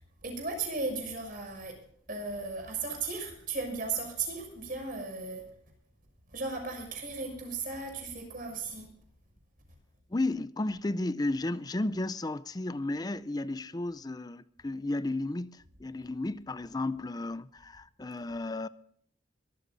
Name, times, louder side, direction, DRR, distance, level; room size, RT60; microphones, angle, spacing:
voice 1, 0.2-1.7 2.1-5.4 6.3-8.9, right 3 dB, 45° right, 6.4 m, -36 dB
voice 2, 10.1-18.7, left 2 dB, 20° left, 0.4 m, -33 dB
23.5 x 14.5 x 2.6 m
head